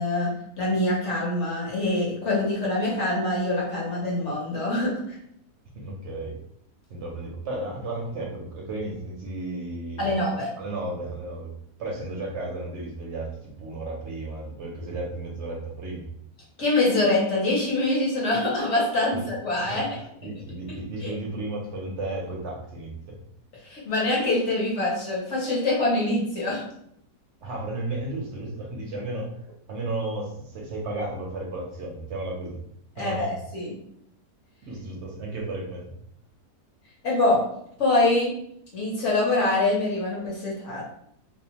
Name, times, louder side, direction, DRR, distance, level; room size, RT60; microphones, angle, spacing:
voice 1, 0.0-5.0 10.0-10.5 16.6-19.9 20.7-21.1 23.6-26.6 33.0-33.7 37.0-37.4 37.8-38.3 38.7-40.8, left 2 dB, 60° left, -4 dB, 0.9 m, -24 dB
voice 2, 5.7-6.4 6.9-10.1 10.6-11.5 11.8-16.1 19.1-19.2 19.7-19.8 20.2-23.2 27.4-29.3 29.7-32.6 33.0-33.4 34.6-35.9, right 2 dB, 65° right, -2 dB, 0.7 m, -33 dB
2.7 x 2.1 x 2.8 m, 0.71 s
omnidirectional pair, 1.7 m